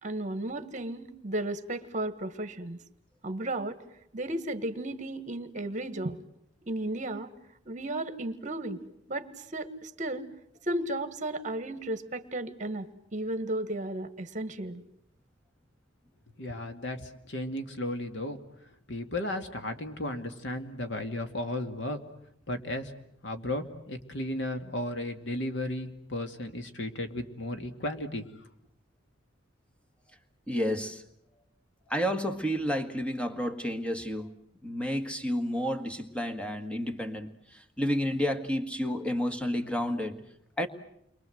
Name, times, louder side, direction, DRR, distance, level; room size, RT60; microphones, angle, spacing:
voice 1, 0.0-2.8 3.2-3.8 4.1-6.2 6.7-7.3 7.6-8.8 9.1-10.3 10.6-12.9 13.1-14.8, right 1 dB, 40° right, 1.6 m, -34 dB
voice 2, 16.4-17.0 17.3-18.4 18.9-22.0 22.5-22.9 23.2-28.2, left 1 dB, 70° left, 2.3 m, -34 dB
voice 3, 30.5-31.0 31.9-40.2 40.6-40.7, equal, 5° left, 1.7 m, -31 dB
30.0 x 23.5 x 7.9 m
head